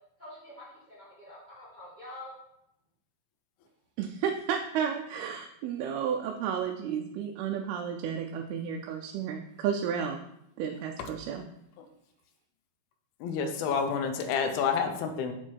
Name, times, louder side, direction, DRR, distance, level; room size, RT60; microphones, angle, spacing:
voice 1, 0.2-2.3, left 1 dB, 30° right, -8 dB, 0.8 m, -46 dB
voice 2, 4.0-10.2 10.6-11.5, right 8 dB, 90° right, 2 dB, 2.5 m, -32 dB
voice 3, 13.2-15.3, left 6 dB, 85° left, 6 dB, 2.6 m, -29 dB
6.6 x 4.4 x 4.5 m, 0.79 s
omnidirectional pair, 4.4 m